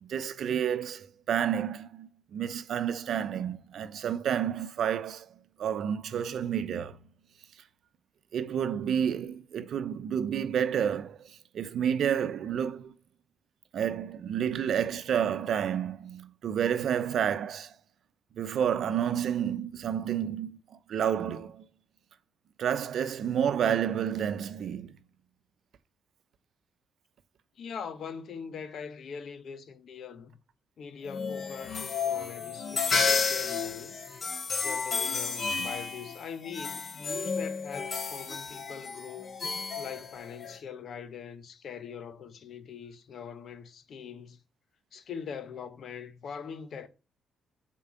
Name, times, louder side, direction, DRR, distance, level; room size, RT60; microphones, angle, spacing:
voice 1, 0.0-7.0 8.3-12.9 13.7-17.8 18.3-21.7 22.6-25.0, right 8 dB, 65° right, 0.8 m, -30 dB
voice 2, 27.6-30.4 30.8-34.0 34.6-39.4 39.8-44.4 44.9-46.9, left 6 dB, 60° left, 1.1 m, -42 dB
sound 1, 31.1-40.6, left 5 dB, 40° left, 1.3 m, -32 dB
7.2 x 4.6 x 6.0 m
cardioid pair, 105°, 0 cm